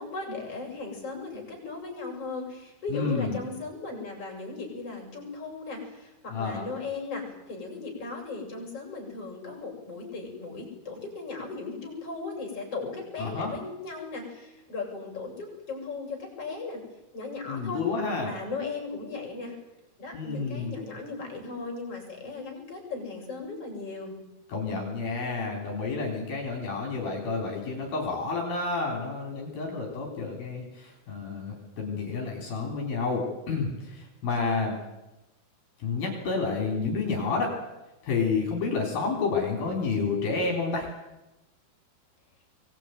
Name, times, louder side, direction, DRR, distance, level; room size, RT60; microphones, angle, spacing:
voice 1, 0.0-16.8 17.1-17.8 18.2-19.6 20.0-24.2, left 3 dB, 30° left, 0 dB, 7.3 m, -37 dB
voice 2, 2.9-3.4 6.3-6.7 13.2-13.5 17.5-18.3 20.1-20.7 24.5-34.7 35.8-37.6 38.0-40.9, left 4 dB, 55° left, 1 dB, 5.2 m, -30 dB
23.0 x 19.0 x 9.4 m, 1.0 s
omnidirectional pair, 5.1 m